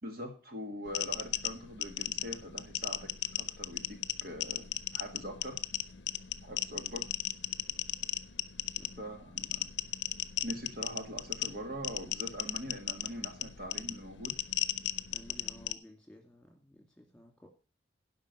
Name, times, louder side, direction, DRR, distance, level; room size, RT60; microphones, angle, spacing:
voice 1, 0.0-3.1 3.4-4.7 4.9-5.6 6.4-7.0 9.0-9.7 10.4-14.3, equal, 55° right, 4 dB, 1.9 m, -42 dB
sound 1, 0.9-15.7, left 12 dB, 75° left, 0.6 m, -36 dB
voice 2, 15.1-17.5, left 1 dB, 5° left, 2 dB, 2.5 m, -55 dB
11.0 x 5.5 x 6.7 m, 0.36 s
head